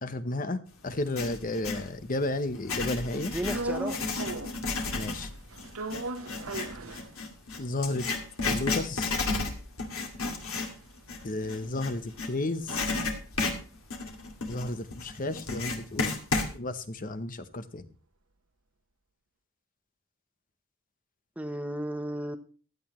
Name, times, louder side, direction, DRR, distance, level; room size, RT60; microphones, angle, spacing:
voice 1, 0.0-3.3 4.9-5.3 7.6-8.1 8.5-9.2 11.2-12.9 14.5-16.2 16.5-17.8, left 2 dB, 40° left, 11 dB, 0.9 m, -33 dB
Writing, 0.9-1.9 2.5-12.3 12.7-16.5, left 3 dB, 85° left, 2.4 m, -32 dB
voice 2, 3.1-4.2 21.4-22.4, equal, 5° right, 8 dB, 0.9 m, -34 dB
sound 1, 3.5-4.7 5.0-7.6 8.0-8.1 8.3-12.8 13.1-17.2, right 2 dB, 85° right, 1.2 m, -40 dB
15.5 x 11.0 x 3.1 m, 0.37 s
head